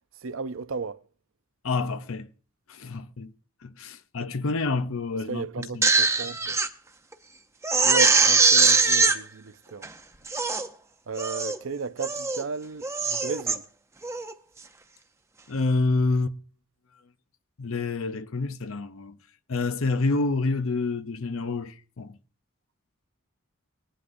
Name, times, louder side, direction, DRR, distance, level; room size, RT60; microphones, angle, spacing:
voice 1, 0.2-1.0 5.3-6.6 7.8-9.9 11.1-13.7, right 4 dB, 70° right, 0.6 m, -34 dB
voice 2, 1.6-2.3 2.7-3.3 3.6-5.9 15.5-16.4 17.6-19.2 19.5-22.2, left 3 dB, 70° left, 0.7 m, -28 dB
Crying sobbing, 5.6-6.7 7.1-7.2 7.6-9.2 9.8-9.9 10.3-10.7 11.2-11.6 12.0-12.4 12.8-13.6 14.0-14.3, right 4 dB, 15° right, 0.6 m, -22 dB
20.0 x 11.5 x 2.6 m
head